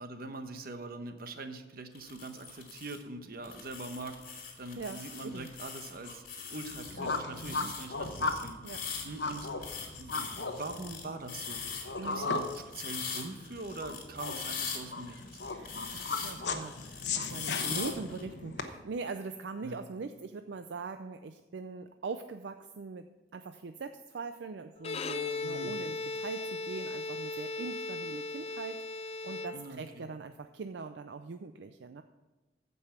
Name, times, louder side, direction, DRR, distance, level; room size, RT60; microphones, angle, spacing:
voice 1, 0.0-4.2 4.6-6.2 6.5-11.7 12.0-15.4 19.6-19.8 25.4-25.7 29.5-30.1, right 2 dB, 55° right, 7 dB, 1.0 m, -43 dB
sound 1, 1.9-3.0 3.4-18.2, left 6 dB, 55° left, 2.4 m, -41 dB
voice 2, 4.8-5.5 7.5-7.7 8.6-8.8 12.0-12.3 15.5-32.0, right 4 dB, 75° right, 8 dB, 0.5 m, -42 dB
sound 2, 6.5-18.6, left 3 dB, 70° left, 1.0 m, -37 dB
Bowed string instrument, 24.8-30.0, left 3 dB, 35° left, 0.5 m, -37 dB
14.5 x 5.5 x 5.8 m, 1.1 s
head